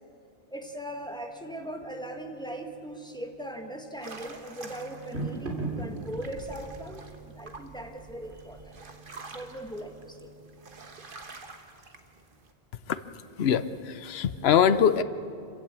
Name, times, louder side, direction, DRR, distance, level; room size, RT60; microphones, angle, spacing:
voice 1, 0.5-7.0 7.4-8.8 9.3-10.3, right 1 dB, 5° left, 4 dB, 1.6 m, -39 dB
sound 1, 0.6-11.4, right 3 dB, 80° right, 3.5 m, -43 dB
sound 2, 4.0-12.5, right 3 dB, 55° right, 1.6 m, -47 dB
voice 2, 13.4-15.0, left 8 dB, 75° left, 13 dB, 1.0 m, -23 dB
25.5 x 15.0 x 8.7 m, 2.5 s
omnidirectional pair, 1.1 m